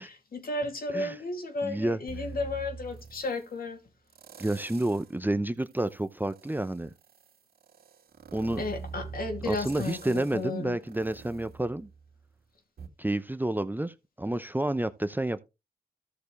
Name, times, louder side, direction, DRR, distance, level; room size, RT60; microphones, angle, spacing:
voice 1, 0.0-3.8 8.6-10.8, left 2 dB, 65° left, 2.7 m, -33 dB
voice 2, 1.6-2.0 4.4-6.9 8.3-8.6 9.5-11.9 13.0-15.4, right 1 dB, 10° right, 0.8 m, -30 dB
sound 1, 2.1-3.5 4.1-5.2 5.6-12.3 12.8-12.9, right 5 dB, 70° right, 2.3 m, -45 dB
13.5 x 6.8 x 3.3 m
supercardioid pair, 45°, 17 cm